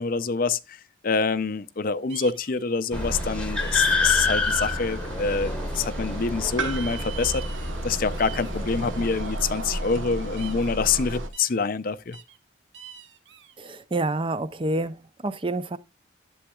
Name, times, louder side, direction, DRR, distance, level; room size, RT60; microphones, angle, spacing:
voice 1, 0.0-7.4 7.8-12.2, left 5 dB, 45° left, 0.5 m, -26 dB
sound 1, 2.1-2.6 3.6-4.0 4.4-4.7 5.2-6.0 6.6-7.8 8.1-9.4 10.4-10.8 11.3-11.6 12.1-12.4 12.7-13.5, right 10 dB, 65° right, 0.9 m, -45 dB
sound 2, 2.9-9.1, left 4 dB, 5° left, 1.0 m, -29 dB
sound 3, 2.9-11.3, right 1 dB, 85° right, 1.2 m, -33 dB
voice 2, 13.6-15.8, right 2 dB, 25° right, 0.5 m, -28 dB
11.5 x 7.9 x 2.3 m
head